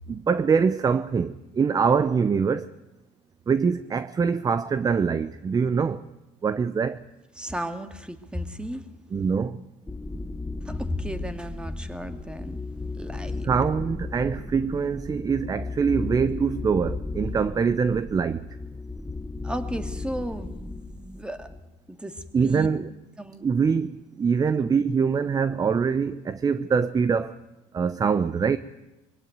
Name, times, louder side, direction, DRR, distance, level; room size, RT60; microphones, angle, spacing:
voice 1, 0.1-2.7 3.5-6.0 6.4-7.0 9.1-9.6 13.4-18.4 22.3-22.9 23.4-27.4 27.7-28.6, right 6 dB, 25° right, 0.8 m, -24 dB
voice 2, 7.4-8.9 10.6-12.6 12.9-13.5 19.4-21.5 21.9-22.7 23.2-23.4 24.6-24.7, equal, 5° right, 2.2 m, -34 dB
sound 1, 9.9-21.6, left 3 dB, 10° left, 1.1 m, -35 dB
22.5 x 16.5 x 9.4 m
supercardioid pair, 95°, 14 cm